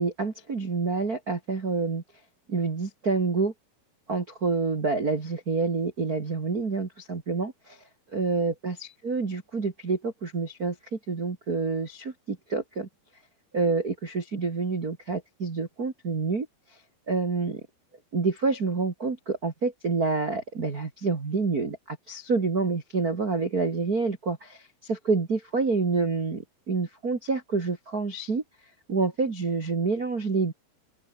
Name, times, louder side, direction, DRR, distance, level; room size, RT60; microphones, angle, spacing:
voice 1, 0.0-2.0 2.5-3.5 4.1-7.8 8.1-12.9 13.5-16.5 17.1-17.6 18.1-28.4 28.9-30.5, right 4 dB, 40° right, 1.2 m, -28 dB
open air
omnidirectional pair, 5.3 m